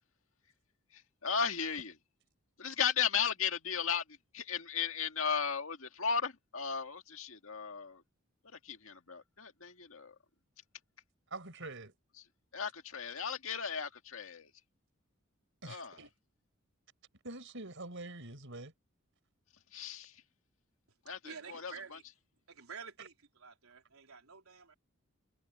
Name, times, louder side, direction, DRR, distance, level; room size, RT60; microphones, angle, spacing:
voice 1, 0.9-1.9 2.6-4.0 4.3-8.0 8.6-10.1 12.5-14.5 15.6-16.0 19.7-20.2 21.1-21.7, left 7 dB, 70° left, 1.9 m, -35 dB
voice 2, 11.3-11.9 15.6-16.1 17.2-18.7, right 2 dB, 60° right, 6.0 m, -45 dB
voice 3, 21.2-22.0 22.5-24.7, right 6 dB, 85° right, 3.8 m, -50 dB
head